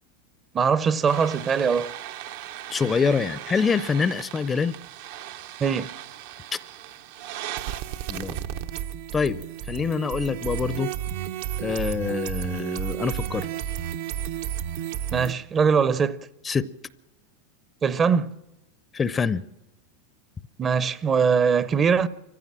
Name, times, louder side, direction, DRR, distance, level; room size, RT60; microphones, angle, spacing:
voice 1, 0.5-1.9 5.6-5.9 15.1-16.2 17.8-18.3 20.6-22.1, right 6 dB, 25° right, 0.7 m, -21 dB
sound 1, 1.1-15.3, right 11 dB, 65° right, 0.9 m, -34 dB
voice 2, 2.7-4.7 8.1-8.4 9.1-9.4 9.7-10.9 11.6-13.5 16.4-16.7 18.9-19.4, left 5 dB, 20° left, 0.6 m, -25 dB
24.5 x 15.0 x 7.5 m
supercardioid pair, 120°, 0 cm